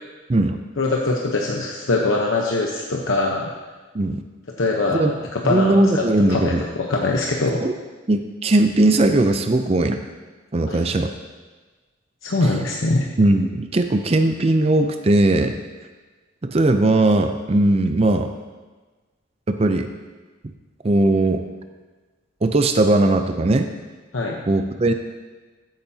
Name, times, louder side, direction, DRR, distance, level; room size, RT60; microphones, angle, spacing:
voice 1, 0.8-3.5 4.6-6.0 6.3-7.6 10.7-10.8 12.2-13.1 24.1-24.4, left 2 dB, 85° left, -1 dB, 0.9 m, -22 dB
voice 2, 5.4-6.6 7.6-7.7 8.1-10.0 10.5-11.1 13.2-15.6 16.4-18.3 19.5-19.9 20.8-21.4 22.4-23.7 24.5-24.9, right 2 dB, 30° right, 7 dB, 0.4 m, -18 dB
14.5 x 8.9 x 2.8 m, 1.3 s
head